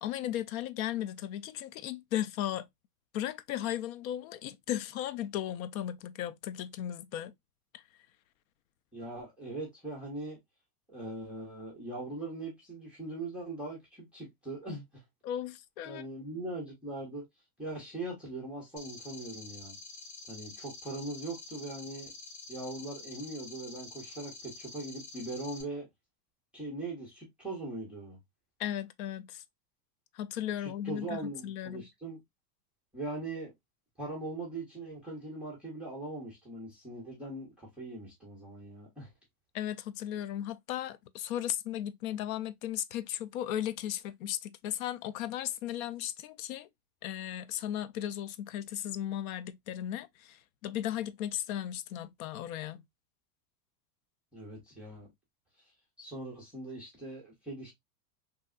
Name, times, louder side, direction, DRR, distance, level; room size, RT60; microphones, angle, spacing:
voice 1, 0.0-2.7 3.1-7.3 7.7-7.8 15.2-16.0 28.6-29.4 30.1-31.9 39.5-46.7 47.0-52.8, left 11 dB, 70° left, 0.5 m, -36 dB
voice 2, 8.9-10.4 10.9-15.0 15.8-17.2 17.6-19.8 20.3-22.1 22.5-25.9 26.5-28.2 30.6-32.2 32.9-33.5 34.0-39.1 54.3-55.1 56.0-57.7, right 2 dB, 5° right, 0.3 m, -41 dB
sound 1, 18.8-25.6, left 3 dB, 90° left, 1.5 m, -47 dB
3.1 x 2.8 x 2.3 m
supercardioid pair, 160°, 45 cm